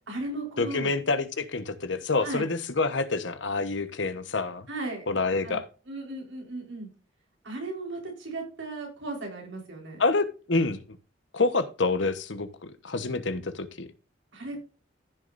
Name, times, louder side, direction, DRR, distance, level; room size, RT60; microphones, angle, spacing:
voice 1, 0.1-0.9 2.2-2.5 4.7-5.1 5.4-5.6 5.9-6.9 7.4-10.0 14.3-14.6, right 2 dB, 80° right, 1 dB, 4.3 m, -36 dB
voice 2, 0.6-4.7 5.1-5.7 10.0-11.0 11.3-13.9, left 3 dB, 75° left, 11 dB, 1.1 m, -27 dB
15.0 x 6.6 x 2.6 m, 0.35 s
head